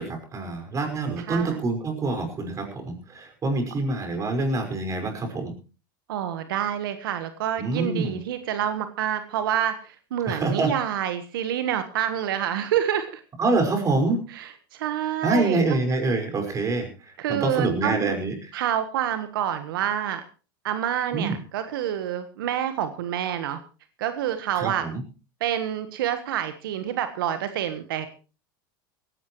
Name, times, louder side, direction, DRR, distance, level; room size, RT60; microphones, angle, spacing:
voice 1, 0.0-5.5 7.6-8.2 10.3-10.7 13.4-14.2 15.2-16.9 17.3-18.5 21.1-21.4 24.5-25.0, right 3 dB, 30° right, 6 dB, 5.7 m, -26 dB
voice 2, 1.2-1.6 6.1-13.2 14.3-15.6 17.2-18.2 18.5-20.2 20.6-23.6 24.0-24.9 25.4-28.1, right 10 dB, 80° right, 9 dB, 1.4 m, -27 dB
18.5 x 16.5 x 3.2 m, 0.34 s
hypercardioid pair, 105°, 12 cm